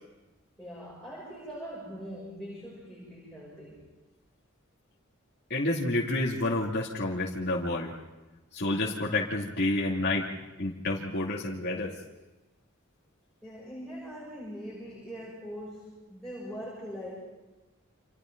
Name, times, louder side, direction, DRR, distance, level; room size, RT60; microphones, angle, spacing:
voice 1, 0.6-3.9 13.4-17.1, equal, ahead, -6 dB, 7.0 m, -42 dB
voice 2, 5.5-7.9 8.5-10.3 10.6-12.0, left 2 dB, 55° left, -4 dB, 2.5 m, -29 dB
30.0 x 27.5 x 3.9 m, 1.1 s
head